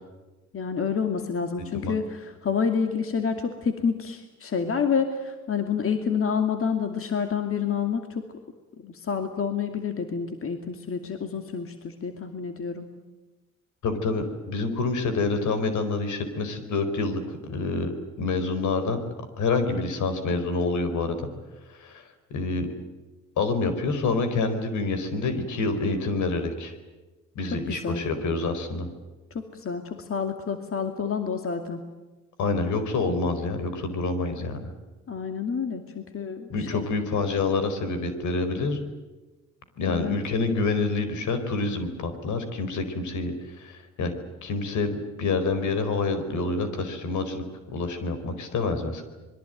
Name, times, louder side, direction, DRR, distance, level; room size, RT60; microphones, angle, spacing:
voice 1, 0.5-8.2 8.8-12.9 27.7-28.0 29.3-31.8 35.1-36.8 39.9-40.2, left 6 dB, 45° left, 6 dB, 2.5 m, -28 dB
voice 2, 1.6-2.0 13.8-17.9 18.2-19.0 19.4-21.3 21.8-22.0 22.3-22.7 23.4-26.7 27.3-28.9 32.4-34.6 36.5-38.8 39.8-44.1 44.4-49.0, left 3 dB, 75° left, 9 dB, 4.7 m, -27 dB
26.5 x 22.0 x 9.3 m, 1.2 s
cardioid pair, 90°, 30 cm